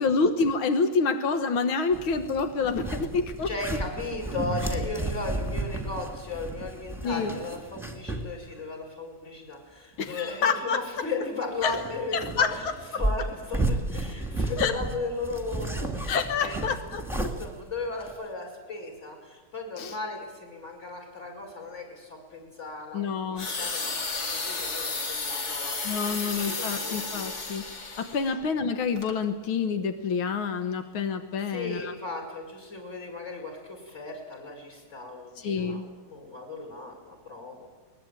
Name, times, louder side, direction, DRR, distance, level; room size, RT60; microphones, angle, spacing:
voice 1, 0.0-3.5 7.0-7.4 10.0-10.8 11.6-11.8 12.1-12.5 14.6-14.7 16.1-17.0 19.8-20.0 22.9-23.5 25.8-27.7 28.0-31.9 35.4-35.8, left 5 dB, 90° left, 8 dB, 2.1 m, -27 dB
sound 1, 1.9-8.3 8.6-8.7 11.6-18.1, right 2 dB, ahead, 1.9 m, -33 dB
voice 2, 3.4-12.6 12.9-16.6 17.4-23.9 24.2-27.1 28.3-28.4 31.5-37.7, left 3 dB, 35° left, 1 dB, 5.6 m, -36 dB
sound 2, 23.4-28.3 29.0-29.1, left 3 dB, 50° left, 2.8 m, -33 dB
22.0 x 21.0 x 8.9 m, 1.3 s
omnidirectional pair, 2.2 m